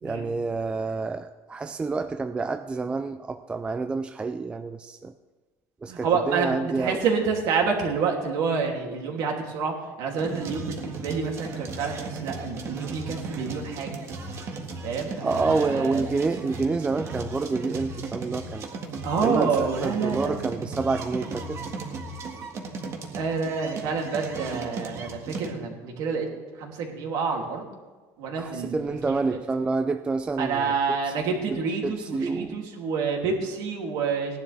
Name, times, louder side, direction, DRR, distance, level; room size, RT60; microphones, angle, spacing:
voice 1, 0.0-5.1 5.8-7.1 15.2-18.7 19.2-21.6 28.4-30.8 31.0-31.1 31.5-32.7, right 3 dB, 15° right, 9 dB, 0.4 m, -28 dB
voice 2, 5.9-13.9 14.8-16.1 19.0-20.3 23.2-26.3 26.6-27.6 28.2-28.7 29.1-29.2 30.4-34.4, right 5 dB, 55° right, 1 dB, 2.8 m, -28 dB
sound 1, 10.2-25.5, right 3 dB, 35° right, 1.8 m, -36 dB
18.5 x 11.0 x 3.4 m, 1.3 s
cardioid pair, 150°, 8 cm